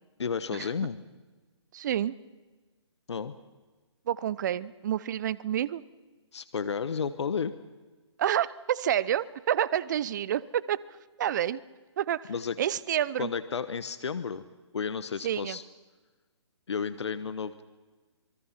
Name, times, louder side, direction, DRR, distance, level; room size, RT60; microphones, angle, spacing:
voice 1, 0.2-1.0 3.1-3.3 6.3-7.6 12.3-12.6 13.2-14.4 14.7-15.6 16.7-17.6, left 6 dB, 65° left, 12 dB, 1.1 m, -32 dB
voice 2, 1.7-2.1 4.1-5.8 8.2-10.8 11.2-11.6 12.0-12.3 12.6-13.3 15.2-15.6, right 10 dB, 40° right, 20 dB, 0.7 m, -28 dB
26.5 x 22.5 x 5.8 m, 1.3 s
figure-of-eight pair, 140°, 16 cm